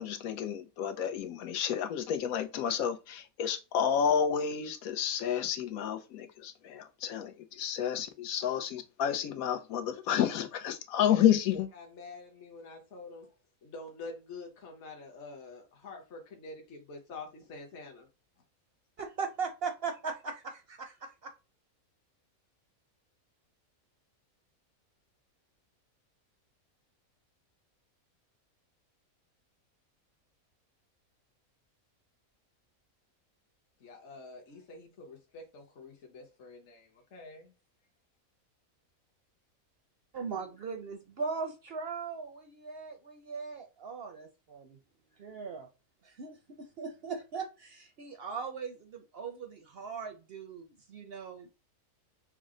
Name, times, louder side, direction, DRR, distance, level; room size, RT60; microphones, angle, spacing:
voice 1, 0.0-11.7, left 9 dB, 80° left, 1.1 m, -30 dB
voice 2, 11.7-18.1 33.8-37.5, left 3 dB, 55° left, 1.2 m, -47 dB
voice 3, 19.0-21.3 40.1-44.8 45.2-45.7 46.0-51.5, right 5 dB, 60° right, 0.7 m, -39 dB
6.1 x 2.1 x 3.7 m
omnidirectional pair, 1.5 m